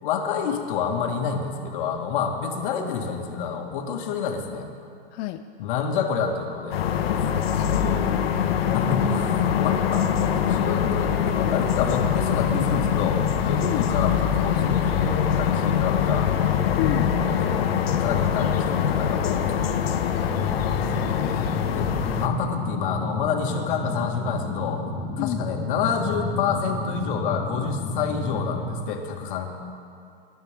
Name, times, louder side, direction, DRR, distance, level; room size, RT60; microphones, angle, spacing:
voice 1, 0.0-4.7 5.6-6.8 8.7-9.4 9.6-16.3 17.3-17.7 18.0-19.6 21.7-24.8 25.2-29.5, left 6 dB, 60° left, 2 dB, 2.2 m, -28 dB
voice 2, 5.1-5.4 7.4-7.8 13.6-13.9 16.8-17.1 20.8-21.5 25.2-25.4, left 14 dB, 30° left, 7 dB, 0.4 m, -31 dB
sound 1, 6.7-22.3, left 8 dB, 85° left, 1.3 m, -23 dB
sound 2, 20.2-28.8, left 2 dB, 10° left, 2.3 m, -31 dB
24.5 x 11.5 x 3.8 m, 2.4 s
supercardioid pair, 145°, 29 cm